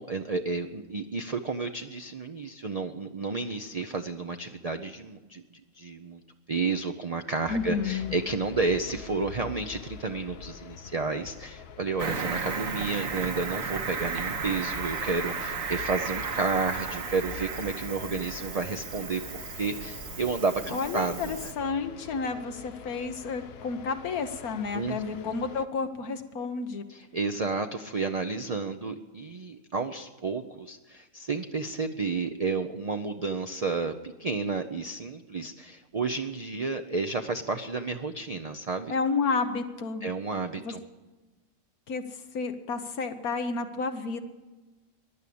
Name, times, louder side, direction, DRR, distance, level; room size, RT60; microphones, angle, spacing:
voice 1, 0.0-5.4 5.7-6.2 6.5-19.2 19.5-21.5 24.7-25.0 26.9-38.9 40.0-40.8, right 4 dB, 40° right, 6 dB, 0.6 m, -31 dB
sound 1, 7.4-25.7, left 8 dB, 55° left, 0.8 m, -46 dB
voice 2, 7.5-8.1 20.7-26.8 38.9-40.0 40.6-40.7 41.9-42.0 42.3-44.2, left 4 dB, 85° left, 6 dB, 1.5 m, -31 dB
Cricket, 12.0-21.5, right 5 dB, 65° right, 1.5 m, -34 dB
15.0 x 11.0 x 8.6 m, 1.2 s
omnidirectional pair, 1.5 m